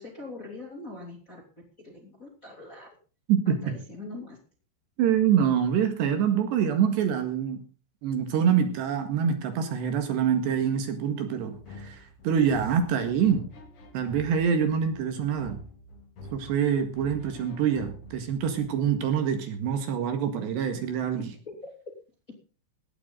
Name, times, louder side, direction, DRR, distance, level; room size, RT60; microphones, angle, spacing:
voice 1, 0.0-1.4 1.8-2.9 3.6-4.4 21.4-21.7 22.3-22.4, left 2 dB, 20° left, 2 dB, 2.5 m, -42 dB
voice 2, 5.0-7.6 8.0-13.4 13.9-15.6 16.3-21.2, right 8 dB, 65° right, 7 dB, 3.7 m, -25 dB
sound 1, 11.5-19.0, equal, 45° left, 2.0 m, -46 dB
17.5 x 12.0 x 3.9 m, 0.37 s
omnidirectional pair, 5.5 m